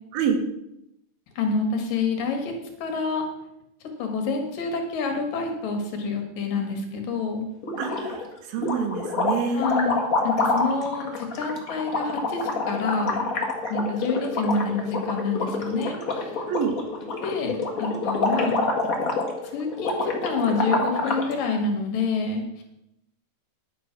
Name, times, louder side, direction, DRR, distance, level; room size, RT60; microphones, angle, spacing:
voice 1, 1.4-2.5 2.8-3.3 4.0-7.5 9.5-10.0 10.2-13.3 13.7-16.3 17.2-18.6 19.5-22.6, left 4 dB, 70° left, 3 dB, 3.3 m, -27 dB
sound 1, 7.6-8.3 8.6-21.3, left 3 dB, 45° left, 1.1 m, -27 dB
voice 2, 7.8-8.2 8.5-9.7 10.4-10.6 16.5-16.7, right 6 dB, 85° right, 6 dB, 3.3 m, -27 dB
11.0 x 8.4 x 5.9 m, 0.83 s
omnidirectional pair, 4.1 m